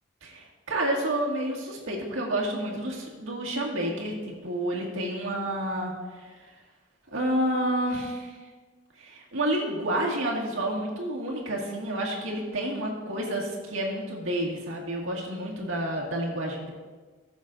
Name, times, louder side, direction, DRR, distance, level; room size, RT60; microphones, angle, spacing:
voice 1, 0.2-6.3 7.1-8.4 9.0-16.7, right 1 dB, 80° right, -2 dB, 2.0 m, -29 dB
16.5 x 7.2 x 2.6 m, 1.4 s
head